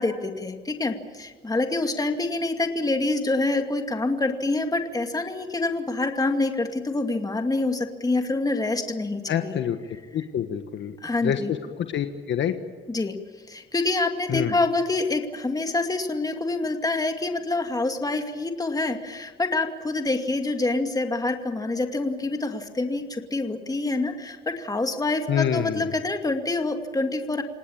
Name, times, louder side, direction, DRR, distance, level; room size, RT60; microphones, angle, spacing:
voice 1, 0.0-9.6 11.0-11.5 12.9-13.2 13.5-27.4, left 2 dB, 20° left, 5 dB, 2.4 m, -26 dB
voice 2, 9.3-9.8 10.1-10.9 11.2-12.5 14.3-14.5 25.3-25.8, left 9 dB, 70° left, 7 dB, 1.5 m, -26 dB
27.0 x 18.5 x 8.7 m, 1.4 s
cardioid pair, 90°, 20 cm